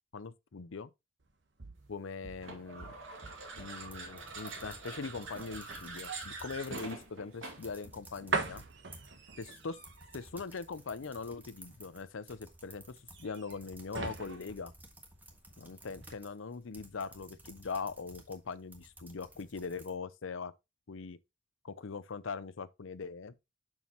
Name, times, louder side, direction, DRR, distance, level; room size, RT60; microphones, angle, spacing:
voice 1, 0.1-0.9 1.9-2.9 3.6-8.6 9.4-9.8 10.1-14.7 15.6-20.5 20.9-21.2 21.6-23.3, left 4 dB, 80° left, 0.6 m, -41 dB
sound 1, 1.2-15.6 15.9-16.1, right 4 dB, 60° right, 1.2 m, -43 dB
sound 2, 2.4-7.8, right 3 dB, 80° right, 2.4 m, -45 dB
computer keyboard typing, 3.8-7.1 7.4-19.9, right 1 dB, 10° right, 1.5 m, -55 dB
7.2 x 6.2 x 3.0 m
head